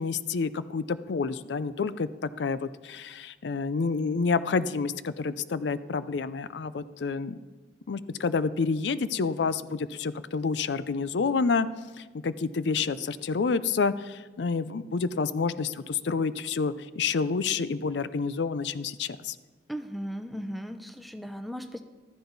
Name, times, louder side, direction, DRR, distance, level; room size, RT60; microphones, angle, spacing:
voice 1, 0.0-7.4 7.9-11.7 12.0-19.4, left 4 dB, 80° left, 15 dB, 0.5 m, -29 dB
voice 2, 19.7-21.8, equal, ahead, 6 dB, 0.6 m, -37 dB
14.5 x 12.5 x 4.0 m, 1.3 s
head